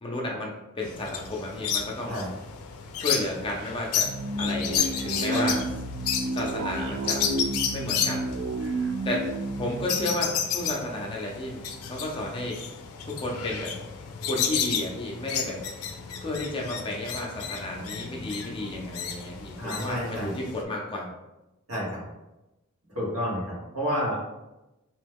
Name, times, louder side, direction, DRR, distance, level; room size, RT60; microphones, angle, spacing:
voice 1, 0.0-2.2 3.0-4.1 4.4-5.6 6.3-7.3 7.7-8.3 9.0-9.2 9.6-11.6 11.9-12.6 13.1-13.7 14.2-15.6 16.2-21.1, left 1 dB, 25° left, -1 dB, 0.5 m, -32 dB
sound 1, 0.8-20.6, left 7 dB, 85° left, 0.4 m, -32 dB
sound 2, 4.0-11.1, right 2 dB, 60° right, 0.3 m, -31 dB
voice 2, 19.6-20.4 21.7-22.0 22.9-24.2, equal, 80° right, -6 dB, 1.4 m, -30 dB
3.0 x 2.2 x 3.4 m, 0.98 s
head